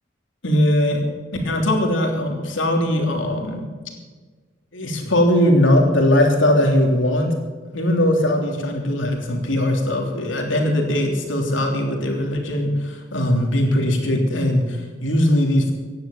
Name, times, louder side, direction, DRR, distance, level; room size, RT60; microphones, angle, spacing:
voice 1, 0.4-1.0 1.4-3.6 4.7-7.3 7.7-15.7, left 1 dB, 80° left, 2 dB, 3.2 m, -20 dB
16.0 x 10.5 x 7.3 m, 1.4 s
head